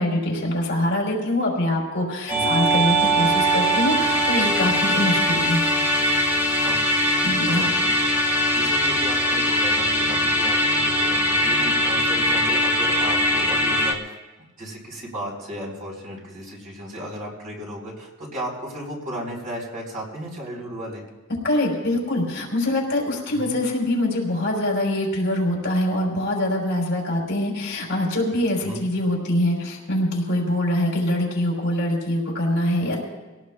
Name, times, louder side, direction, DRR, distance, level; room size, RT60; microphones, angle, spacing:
voice 1, 0.0-5.7 7.2-7.7 21.4-33.0, left 1 dB, 55° left, -2 dB, 4.4 m, -24 dB
Musical instrument, 2.3-13.9, equal, 10° right, 1.8 m, -21 dB
voice 2, 6.6-7.0 7.5-8.0 8.3-14.2 14.6-21.0 23.3-23.6 28.6-28.8, equal, 40° right, -2 dB, 4.1 m, -35 dB
24.5 x 17.5 x 2.4 m, 1.1 s
head